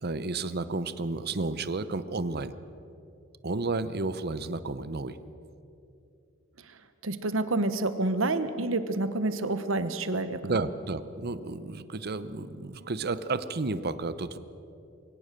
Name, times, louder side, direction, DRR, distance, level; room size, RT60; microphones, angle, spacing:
voice 1, 0.0-2.6 3.4-5.2 10.4-14.4, right 3 dB, 50° right, 14 dB, 0.8 m, -32 dB
voice 2, 7.0-10.4, right 2 dB, 75° right, 11 dB, 1.2 m, -28 dB
23.0 x 17.5 x 6.8 m, 2.7 s
head